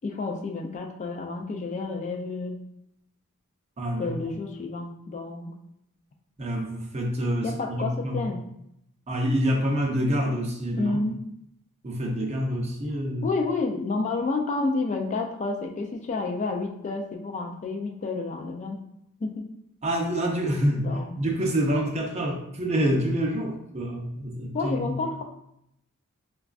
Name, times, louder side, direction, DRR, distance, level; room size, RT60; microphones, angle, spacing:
voice 1, 0.0-2.6 4.0-5.5 7.4-8.4 10.7-11.2 13.2-18.8 19.2-19.4 20.8-21.1 24.5-25.2, left 3 dB, 30° left, 2 dB, 0.3 m, -30 dB
voice 2, 3.8-4.3 6.4-8.2 9.1-11.0 11.8-13.3 19.8-25.0, equal, 30° right, 0 dB, 0.5 m, -27 dB
4.8 x 2.3 x 2.4 m, 0.77 s
head